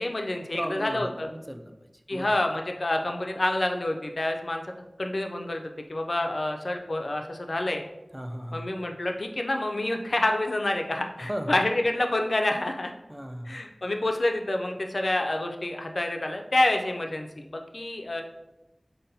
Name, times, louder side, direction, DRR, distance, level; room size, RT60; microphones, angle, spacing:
voice 1, 0.0-1.3 2.1-4.6 5.0-5.6 5.9-7.8 8.5-12.9 13.5-18.2, left 1 dB, 70° left, 4 dB, 0.3 m, -28 dB
voice 2, 0.5-1.7 2.1-2.4 8.1-8.7 11.2-11.6 13.1-13.6, equal, 10° right, 5 dB, 0.3 m, -35 dB
5.3 x 2.1 x 2.6 m, 0.94 s
wide cardioid pair, 55°, 0 cm